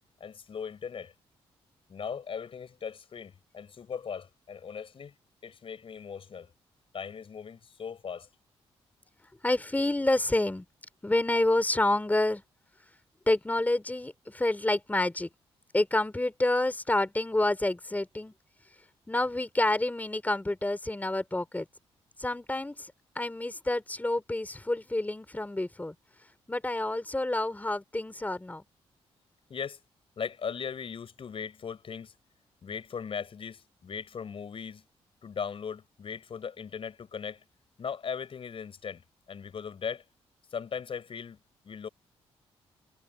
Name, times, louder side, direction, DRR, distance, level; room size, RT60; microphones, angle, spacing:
voice 1, 0.2-1.1 1.9-5.2 5.4-6.5 6.9-8.3 29.5-29.8 30.2-32.1 32.6-34.8 35.2-37.4 37.8-39.0 39.3-40.0 40.5-41.4 41.6-41.9, left 6 dB, 55° left, 6.1 m, -38 dB
voice 2, 9.4-10.7 11.0-12.4 13.3-15.3 15.7-18.3 19.1-21.7 22.2-25.9 26.5-28.6, left 2 dB, 15° left, 4.1 m, -28 dB
cardioid pair, 65°, 11 cm